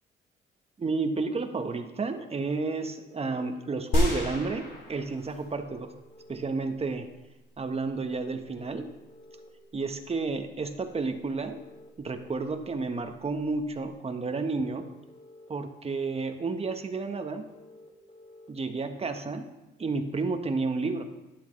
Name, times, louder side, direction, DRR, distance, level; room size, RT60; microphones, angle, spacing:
voice 1, 0.8-5.9 6.3-7.1 7.6-8.9 9.7-11.6 12.0-14.9 15.5-17.5 18.5-19.5 19.8-21.0, right 3 dB, 30° right, 6 dB, 1.1 m, -31 dB
sound 1, 2.5-3.5 5.5-6.5 8.5-9.5 11.5-12.5 14.5-15.5 17.5-18.5, left 2 dB, 35° left, 1.9 m, -52 dB
sound 2, 3.9-5.7 6.2-6.3, left 1 dB, 75° left, 4.3 m, -29 dB
12.0 x 10.5 x 3.2 m, 1.0 s
cardioid pair, 90°, 20 cm